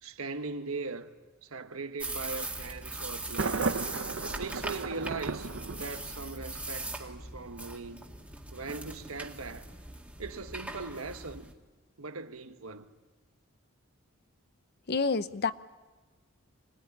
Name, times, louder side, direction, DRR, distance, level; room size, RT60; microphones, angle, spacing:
voice 1, 0.0-1.1 1.4-3.8 4.3-8.0 8.5-9.7 10.2-11.5 12.0-12.9, right 3 dB, 80° right, 1.4 m, -40 dB
sound 1, 2.0-11.5, right 2 dB, 5° right, 1.9 m, -40 dB
Thunder, 3.4-6.4, right 4 dB, 65° right, 0.7 m, -34 dB
voice 2, 14.9-15.5, left 4 dB, 50° left, 0.7 m, -28 dB
24.5 x 19.5 x 9.8 m
head